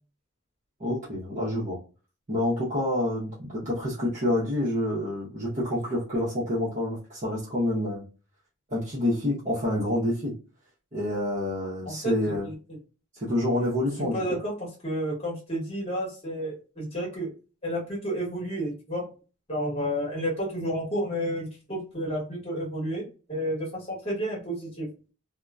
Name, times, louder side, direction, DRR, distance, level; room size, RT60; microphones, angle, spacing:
voice 1, 0.8-1.8 2.3-8.0 8.7-10.3 10.9-12.5 13.2-14.2, left 1 dB, 35° right, -8 dB, 0.8 m, -28 dB
voice 2, 11.8-12.5 14.0-17.3 17.6-19.0 19.5-23.0 23.3-24.9, equal, 25° left, -3 dB, 1.2 m, -31 dB
2.8 x 2.1 x 2.3 m, 0.35 s
head